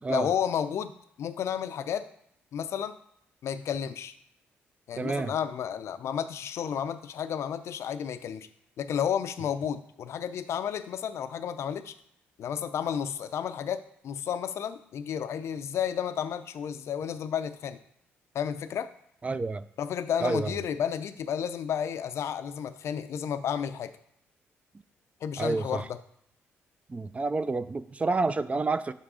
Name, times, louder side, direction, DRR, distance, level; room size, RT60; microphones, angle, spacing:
voice 1, 0.1-0.9 1.2-2.1 2.5-3.0 3.4-4.1 4.9-8.5 8.8-11.9 12.4-17.8 18.3-18.9 19.8-23.9 25.2-26.0, left 8 dB, 65° left, 12 dB, 0.4 m, -32 dB
voice 2, 4.9-5.3 19.2-19.7 20.2-20.5 25.4-25.9 26.9-28.9, right 3 dB, 25° right, 14 dB, 0.3 m, -29 dB
5.5 x 3.7 x 4.8 m, 0.74 s
cardioid pair, 70°, 5 cm